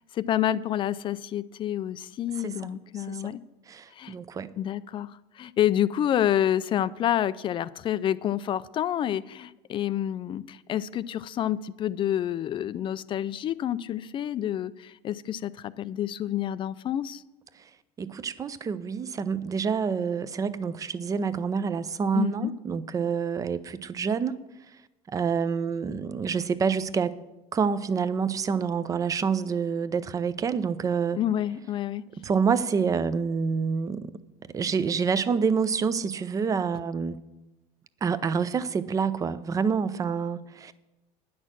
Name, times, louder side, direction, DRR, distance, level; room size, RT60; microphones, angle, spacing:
voice 1, 0.0-3.4 3.9-4.1 4.6-17.2 22.1-22.5 31.2-32.0, left 11 dB, 35° left, 16 dB, 0.3 m, -28 dB
voice 2, 2.4-2.8 3.1-3.2 3.7-4.5 18.0-24.4 25.1-27.1 27.5-31.2 32.2-34.2 34.5-37.2 38.0-40.7, right 6 dB, 20° right, 15 dB, 0.5 m, -27 dB
10.0 x 6.3 x 7.4 m, 0.99 s
cardioid pair, 135°, 15 cm